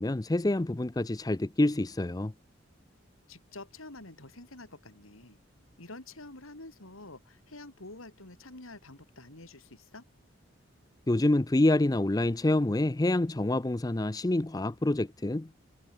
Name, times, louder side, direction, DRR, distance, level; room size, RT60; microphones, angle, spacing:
voice 1, 0.0-2.3 11.1-15.6, left 1 dB, 20° left, 0.5 m, -27 dB
voice 2, 3.3-5.4 5.8-10.0, left 2 dB, 85° left, 3.8 m, -48 dB
head